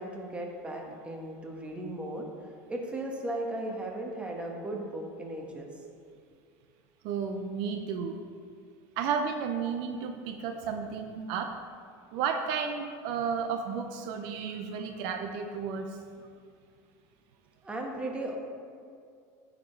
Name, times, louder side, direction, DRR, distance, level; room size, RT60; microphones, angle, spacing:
voice 1, 0.0-2.3 2.7-5.7 17.6-18.4, right 1 dB, 15° right, 1 dB, 1.2 m, -36 dB
voice 2, 7.0-8.2 9.0-11.6 12.1-16.0, right 6 dB, 65° right, 5 dB, 0.6 m, -32 dB
9.4 x 5.0 x 4.5 m, 2.2 s
supercardioid pair, 125°, 8 cm